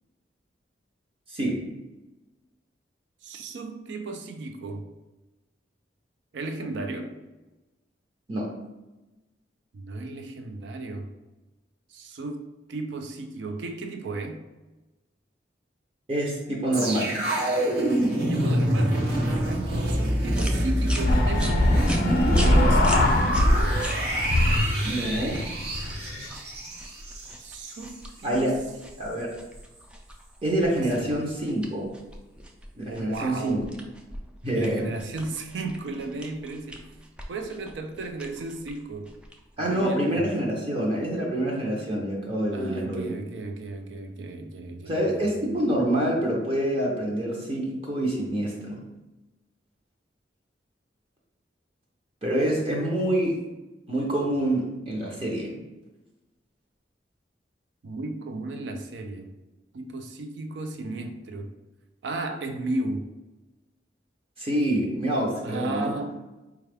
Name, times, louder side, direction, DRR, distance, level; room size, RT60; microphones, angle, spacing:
voice 1, 1.3-1.6 8.3-8.5 16.1-17.2 24.8-25.4 28.2-28.5 29.0-29.3 30.4-31.8 32.8-33.6 34.4-34.9 39.6-43.1 44.8-48.8 52.2-53.4 53.9-55.5 64.4-65.9, right 1 dB, 30° right, -2 dB, 0.7 m, -26 dB
voice 2, 3.2-4.9 6.3-7.1 9.7-11.1 11.9-14.4 18.3-22.9 27.4-28.6 30.8-31.2 32.9-33.7 34.5-36.9 37.3-39.1 39.6-40.3 42.5-45.2 57.8-59.3 59.7-61.6 62.0-63.1 65.4-66.2, right 2 dB, 85° right, 5 dB, 0.4 m, -34 dB
sound 1, 16.7-27.9 28.2-28.4, right 1 dB, 60° right, 0.9 m, -26 dB
sound 2, 20.3-39.9, equal, 5° right, 0.3 m, -41 dB
sound 3, 21.0-23.9 24.2-26.3, left 1 dB, 55° left, 0.5 m, -22 dB
4.4 x 2.3 x 3.3 m, 1.1 s
head